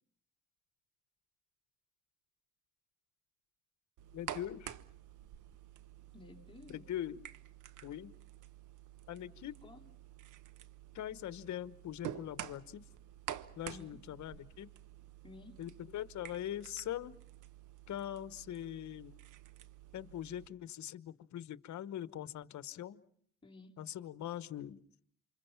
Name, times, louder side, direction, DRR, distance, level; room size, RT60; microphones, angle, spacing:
sound 1, 4.0-20.5, right 11 dB, 80° right, 1.2 m, -50 dB
voice 1, 4.1-4.7 6.7-7.2 7.8-8.1 9.1-9.6 10.9-12.8 13.6-14.7 15.6-17.1 17.9-19.1 19.9-23.0 23.8-24.8, left 11 dB, 70° left, 15 dB, 1.1 m, -42 dB
voice 2, 6.1-6.9 9.6-9.9 13.7-14.0 15.2-15.6 23.4-23.8, left 3 dB, 15° left, 2 dB, 3.5 m, -54 dB
28.5 x 26.0 x 5.8 m, 0.63 s
cardioid pair, 90°, 30 cm